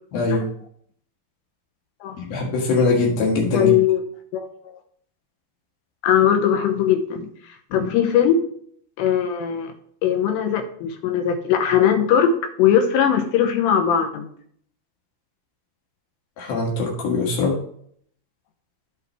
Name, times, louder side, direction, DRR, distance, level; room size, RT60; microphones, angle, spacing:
voice 1, 2.2-3.7 16.4-17.6, left 3 dB, 60° left, -2 dB, 3.5 m, -22 dB
voice 2, 3.5-4.0 4.3-4.8 6.0-8.5 9.0-9.7 10.0-14.3, left 8 dB, 80° left, 6 dB, 3.0 m, -20 dB
14.5 x 5.8 x 3.2 m, 0.64 s
omnidirectional pair, 5.2 m